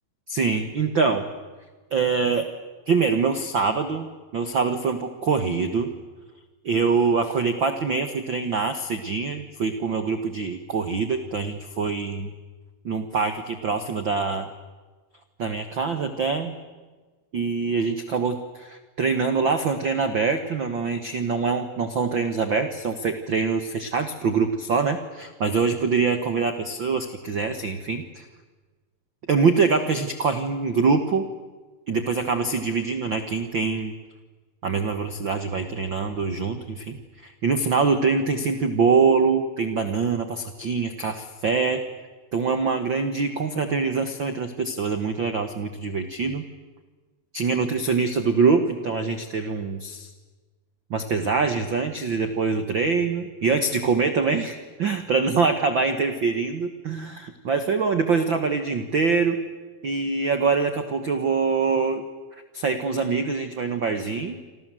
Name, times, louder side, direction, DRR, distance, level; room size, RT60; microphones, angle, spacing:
voice 1, 0.3-1.2 1.9-2.5 2.9-4.1 4.3-5.9 6.6-12.3 12.8-14.5 15.4-16.6 17.3-28.2 29.3-31.3 31.9-33.9 34.6-41.8 42.3-46.5 47.3-50.1 50.9-59.4 59.8-62.1 62.5-64.4, right 4 dB, 85° right, 8 dB, 1.0 m, -24 dB
28.0 x 26.0 x 7.7 m, 1.3 s
omnidirectional pair, 4.5 m